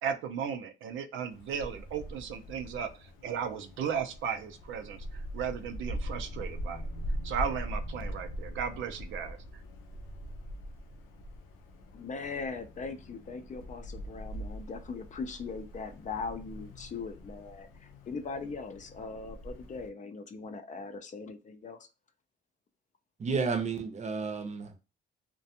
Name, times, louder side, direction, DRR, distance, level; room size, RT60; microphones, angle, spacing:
voice 1, 0.0-5.0 5.3-6.9 7.2-9.4, right 7 dB, 75° right, 0.5 m, -35 dB
Wind, 1.3-19.9, equal, 90° left, 0.6 m, -42 dB
voice 2, 11.9-21.9, left 4 dB, 40° left, 0.4 m, -40 dB
voice 3, 23.2-24.8, right 5 dB, 35° right, 0.7 m, -32 dB
2.4 x 2.2 x 2.7 m
cardioid pair, 90°, 20 cm